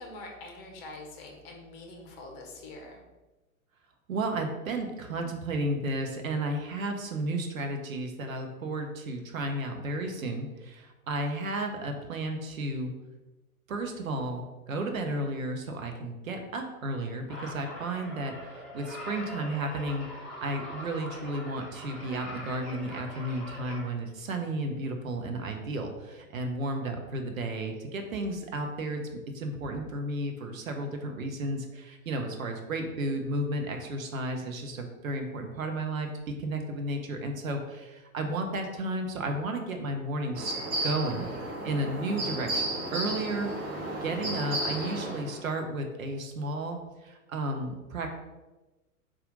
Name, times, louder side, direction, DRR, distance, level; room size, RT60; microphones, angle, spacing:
voice 1, 0.0-3.0, left 2 dB, 30° left, 1 dB, 0.7 m, -44 dB
voice 2, 4.1-12.9 13.7-20.1 20.4-41.3 41.6-43.5 44.0-48.1, right 1 dB, 65° right, 4 dB, 0.7 m, -33 dB
sound 1, 17.3-23.9, left 1 dB, ahead, 0.8 m, -43 dB
sound 2, 40.3-45.4, right 1 dB, 40° right, 1.2 m, -33 dB
4.2 x 2.5 x 3.8 m, 1.1 s
figure-of-eight pair, 95°, 43 cm